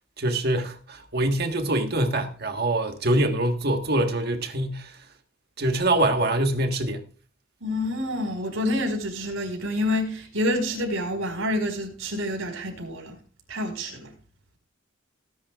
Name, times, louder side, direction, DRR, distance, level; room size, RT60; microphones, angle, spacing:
voice 1, 0.2-5.0 5.6-7.0, right 1 dB, 50° right, 1.6 m, -24 dB
voice 2, 7.6-13.2 13.5-14.1, left 1 dB, 85° right, 4.9 m, -28 dB
19.0 x 11.0 x 2.5 m
head